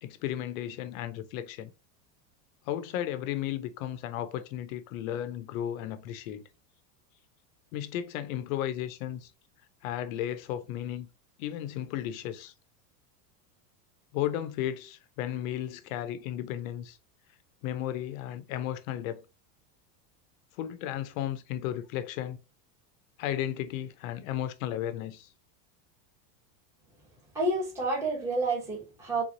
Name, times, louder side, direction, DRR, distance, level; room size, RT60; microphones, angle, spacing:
voice 1, 0.0-1.7 2.7-6.4 7.7-9.3 9.8-11.1 11.4-12.5 14.1-17.0 17.6-19.2 20.6-22.4 23.2-25.3, left 11 dB, 55° left, 0.6 m, -34 dB
voice 2, 27.3-29.2, right 2 dB, 5° right, 0.9 m, -29 dB
3.6 x 3.0 x 3.7 m
supercardioid pair, 170°, 48 cm